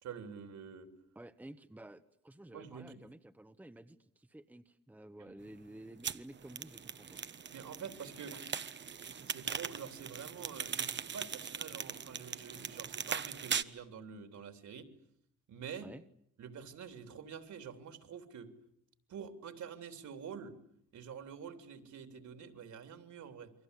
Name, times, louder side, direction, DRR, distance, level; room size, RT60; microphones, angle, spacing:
voice 1, 0.0-0.9 2.5-3.1 7.5-8.5 9.2-14.9 15.5-15.9 16.4-18.5 19.1-20.6 20.9-23.5, right 7 dB, 65° right, 9 dB, 3.5 m, -47 dB
voice 2, 1.1-7.2 15.8-16.0, right 1 dB, 5° right, 8 dB, 1.1 m, -52 dB
sound 1, 6.0-13.6, right 7 dB, 35° right, 1.1 m, -40 dB
29.0 x 23.5 x 8.3 m, 0.70 s
cardioid pair, 120°, 32 cm